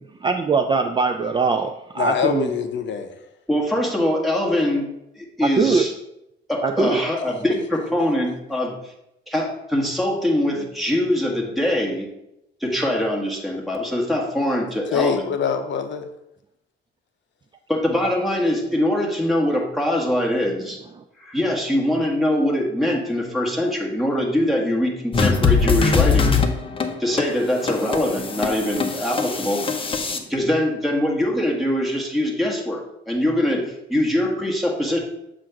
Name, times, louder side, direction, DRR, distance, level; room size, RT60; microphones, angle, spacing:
voice 1, 0.2-2.5 5.4-5.9 6.6-7.0, right 4 dB, 25° right, 6 dB, 0.3 m, -21 dB
voice 2, 2.0-3.1 14.9-16.1, left 7 dB, 65° left, 8 dB, 0.6 m, -24 dB
voice 3, 3.5-4.9 5.2-5.9 6.5-8.8 9.3-12.1 12.6-15.2 17.7-20.8 21.2-26.4 27.0-29.9 30.3-33.6 33.9-35.0, left 1 dB, ahead, -1 dB, 1.6 m, -23 dB
sound 1, 25.1-30.2, left 5 dB, 25° left, 0.7 m, -22 dB
7.4 x 2.5 x 5.8 m, 0.85 s
cardioid pair, 90°, 20 cm